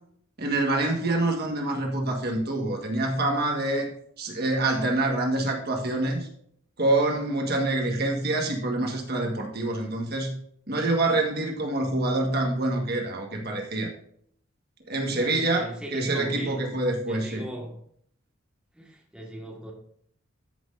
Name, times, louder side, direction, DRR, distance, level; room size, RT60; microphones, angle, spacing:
voice 1, 0.4-6.3 6.8-10.4 10.7-13.9 14.9-17.4, right 2 dB, 50° right, 1 dB, 1.5 m, -26 dB
voice 2, 15.1-16.6 17.0-17.8 18.7-19.7, equal, 5° right, -1 dB, 1.6 m, -39 dB
13.5 x 6.2 x 2.6 m, 0.65 s
head